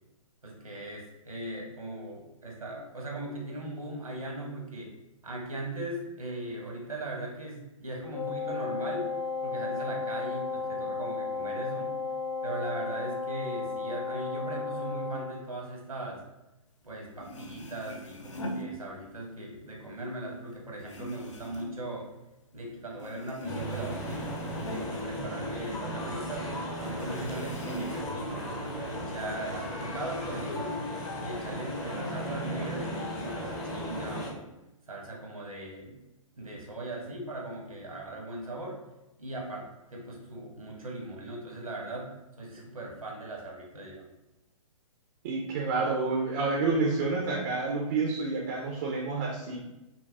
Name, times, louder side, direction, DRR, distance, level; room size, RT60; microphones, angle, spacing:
voice 1, 0.4-4.9 5.2-9.1 9.4-11.9 12.4-16.2 16.8-22.1 22.5-24.3 24.6-26.5 26.8-28.5 28.9-30.9 31.2-34.5 34.9-36.0 36.4-38.8 39.2-42.1 42.4-44.1, right 1 dB, 80° right, -1 dB, 1.1 m, -39 dB
Wind instrument woodwind instrument, 8.1-15.4, left 5 dB, 85° left, 0.9 m, -34 dB
sound 1, 16.9-17.0 17.2-19.4 19.7-22.7 22.9-25.9 26.2-26.3 26.8-28.3 28.6-29.4, equal, 55° left, 0.6 m, -42 dB
sound 2, 23.4-34.3, equal, 15° left, 0.6 m, -36 dB
voice 2, 45.2-49.6, right 3 dB, 30° right, -1 dB, 0.5 m, -29 dB
5.3 x 2.2 x 2.3 m, 0.97 s
figure-of-eight pair, 125°, 18 cm